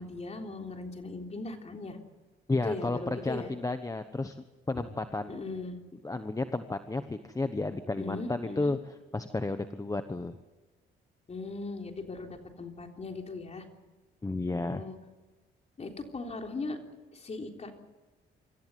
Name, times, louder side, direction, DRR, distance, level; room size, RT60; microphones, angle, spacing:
voice 1, 0.0-2.0 2.6-3.5 5.3-5.8 8.0-8.7 11.3-13.7 14.5-15.0 15.8-16.8 17.1-17.7, left 3 dB, 35° left, 3 dB, 3.6 m, -39 dB
voice 2, 2.5-4.3 4.7-5.3 6.0-8.8 9.1-10.4 14.2-14.8, left 2 dB, 15° left, 9 dB, 1.1 m, -32 dB
25.5 x 14.5 x 9.4 m, 1.2 s
cardioid pair, 90°, 20 cm